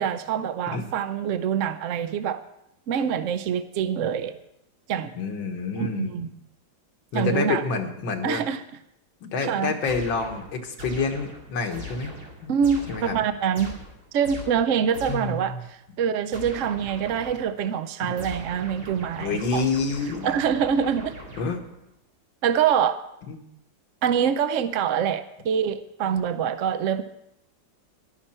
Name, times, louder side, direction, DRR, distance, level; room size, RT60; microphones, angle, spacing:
voice 1, 0.0-2.4 2.9-4.4 4.9-5.1 5.8-6.3 7.1-7.6 8.2-8.6 9.4-9.7 12.5-13.8 14.1-19.6 20.2-21.1 22.4-23.0 24.0-27.0, right 8 dB, 75° right, 11 dB, 0.7 m, -25 dB
voice 2, 5.2-6.1 7.1-8.4 9.2-12.1 12.4-12.5 12.9-13.2 15.1-15.6 18.0-18.1 19.2-20.3 21.4-21.6 23.3-23.5, left 4 dB, 90° left, 3 dB, 2.1 m, -28 dB
sound 1, 9.9-15.5 16.3-17.6 18.2-21.9, equal, 55° right, 3.0 m, -41 dB
14.5 x 11.5 x 4.4 m, 0.81 s
omnidirectional pair, 2.0 m